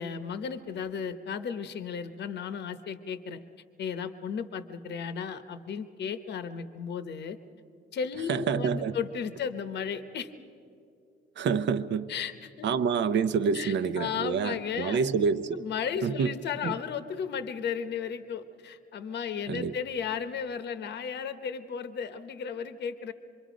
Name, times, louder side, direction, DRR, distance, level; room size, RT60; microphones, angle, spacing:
voice 1, 0.0-3.4 3.8-7.4 7.9-10.3 12.1-12.8 13.5-15.0 15.5-23.1, left 7 dB, 60° left, 0.9 m, -34 dB
voice 2, 8.3-8.9 11.4-12.1 12.6-15.6 16.0-16.3 16.6-16.7 19.5-19.7, right 6 dB, 65° right, 0.8 m, -27 dB
26.0 x 22.5 x 5.1 m
cardioid pair, 90°, 20 cm